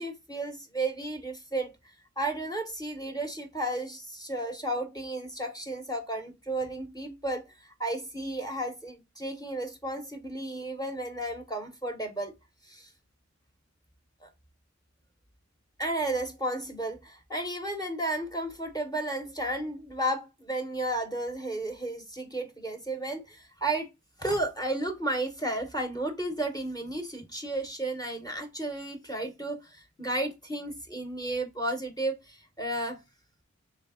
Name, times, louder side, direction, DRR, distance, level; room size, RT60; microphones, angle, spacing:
voice 1, 0.0-1.7 2.2-12.3 12.6-12.9 14.2-14.3 15.8-23.9 24.2-33.0, right 1 dB, 15° left, 0.7 m, -33 dB
3.4 x 3.1 x 3.5 m
wide cardioid pair, 80°, 29 cm